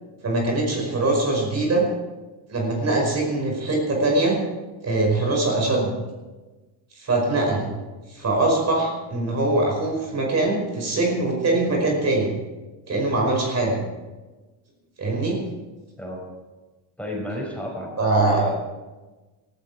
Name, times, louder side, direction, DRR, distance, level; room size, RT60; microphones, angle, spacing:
voice 1, 0.2-1.9 2.5-4.4 4.8-5.9 7.0-7.7 8.1-12.3 12.9-13.8 15.0-15.4 18.0-18.4, right 2 dB, 35° right, 0 dB, 5.3 m, -22 dB
voice 2, 17.0-17.9 18.2-18.5, left 1 dB, 5° left, -1 dB, 5.4 m, -31 dB
17.5 x 14.5 x 4.8 m, 1.2 s
cardioid pair, 110°, 43 cm